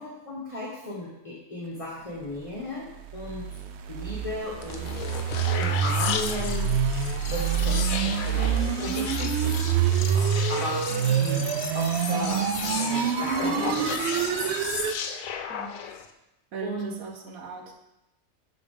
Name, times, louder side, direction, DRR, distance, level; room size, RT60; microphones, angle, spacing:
voice 1, 0.0-2.9 3.1-3.5 3.9-5.3 5.6-6.8 7.3-10.9 11.2-11.4 11.7-14.6 16.6-16.9, left 1 dB, 25° left, -5 dB, 1.2 m, -36 dB
sound 1, 2.8-15.0, right 8 dB, 65° right, 0.7 m, -26 dB
sound 2, 4.6-16.1, left 7 dB, 80° left, 1.0 m, -34 dB
sound 3, 4.6-10.1, left 4 dB, 50° left, 1.0 m, -45 dB
voice 2, 10.9-11.2 15.5-15.8 16.5-17.7, right 5 dB, 85° right, 3 dB, 1.4 m, -39 dB
12.0 x 4.0 x 3.6 m, 0.88 s
omnidirectional pair, 1.4 m